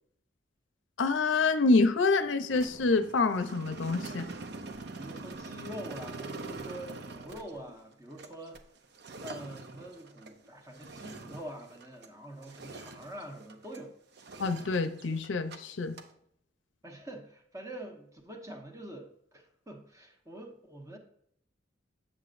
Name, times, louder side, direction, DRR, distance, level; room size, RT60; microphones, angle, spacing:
voice 1, 1.0-4.3 14.4-16.0, left 3 dB, 80° left, 10 dB, 0.6 m, -27 dB
sound 1, 2.5-12.2 12.4-13.8 14.2-15.6 15.8-16.1, right 3 dB, 60° right, 0.7 m, -44 dB
voice 2, 5.0-8.6 9.2-13.9 16.8-21.0, right 1 dB, 15° right, 3 dB, 1.0 m, -45 dB
7.7 x 7.5 x 2.5 m, 0.69 s
head